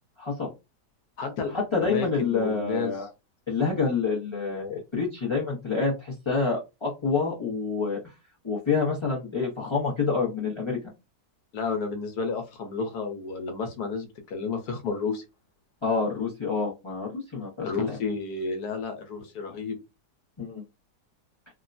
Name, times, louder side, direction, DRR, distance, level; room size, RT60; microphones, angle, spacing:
voice 1, 0.2-0.5 1.5-3.1 3.5-8.0 8.4-10.8 15.8-18.0 20.4-20.6, left 4 dB, 30° left, -5 dB, 0.5 m, -27 dB
voice 2, 1.2-1.5 1.8-2.9 11.5-15.2 17.6-19.8, left 4 dB, 65° left, 5 dB, 1.3 m, -31 dB
3.5 x 2.1 x 2.5 m, 0.25 s
omnidirectional pair, 1.8 m